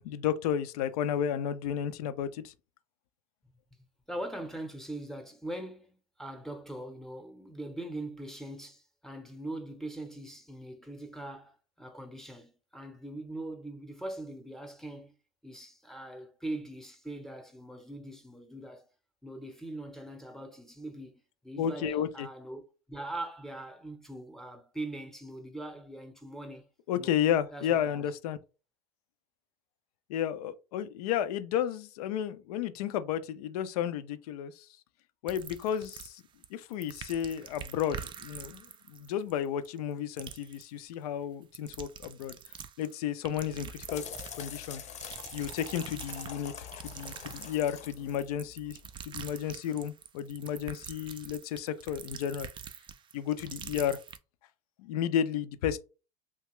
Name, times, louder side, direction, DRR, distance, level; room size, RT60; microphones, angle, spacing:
voice 1, 0.0-2.5 21.6-22.3 26.9-28.4 30.1-34.7 35.2-36.2 36.5-42.4 42.8-44.0 44.4-44.8 45.3-52.5 53.1-54.0 54.8-55.8, left 9 dB, 80° left, 0.5 m, -32 dB
voice 2, 4.1-15.1 15.4-18.9 19.2-22.6 22.9-26.7 27.0-27.1 27.5-28.0, right 1 dB, ahead, 0.7 m, -41 dB
sound 1, 35.3-36.5 36.7-39.9 40.2-40.6 41.4-42.9 43.2-44.6 45.0-54.2, right 8 dB, 25° right, 0.3 m, -45 dB
sound 2, 43.4-49.0, left 7 dB, 35° left, 0.7 m, -45 dB
2.8 x 2.3 x 3.0 m
supercardioid pair, 100°, 19 cm